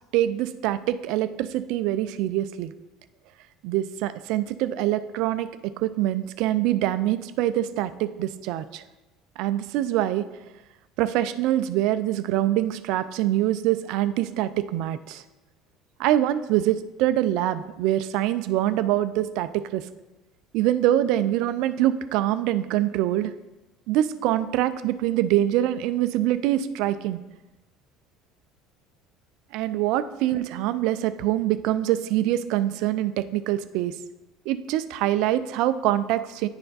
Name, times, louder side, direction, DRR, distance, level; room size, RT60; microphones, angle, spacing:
voice 1, 0.1-2.7 3.6-5.5 5.8-8.8 9.4-10.3 11.0-15.2 16.0-19.9 20.5-23.3 23.9-27.2 29.5-34.0 34.5-36.5, right 13 dB, 70° right, 13 dB, 0.3 m, -24 dB
9.7 x 3.4 x 4.0 m, 1.1 s
supercardioid pair, 85°, 0 cm